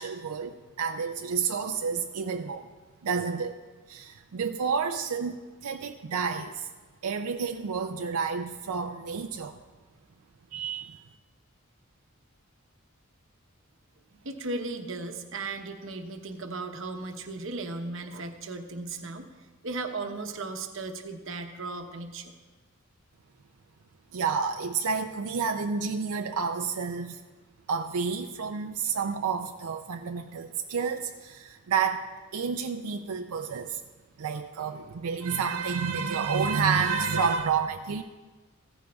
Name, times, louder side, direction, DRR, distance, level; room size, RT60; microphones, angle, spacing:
voice 1, 0.0-2.7 3.0-3.6 3.9-6.7 7.0-9.6 10.5-11.0 24.1-27.2 27.7-33.8 34.2-38.0, right 5 dB, 85° right, 6 dB, 0.5 m, -30 dB
voice 2, 14.2-19.3 19.6-22.3, right 3 dB, 60° right, 5 dB, 0.9 m, -36 dB
15.5 x 14.5 x 2.4 m, 1.3 s
head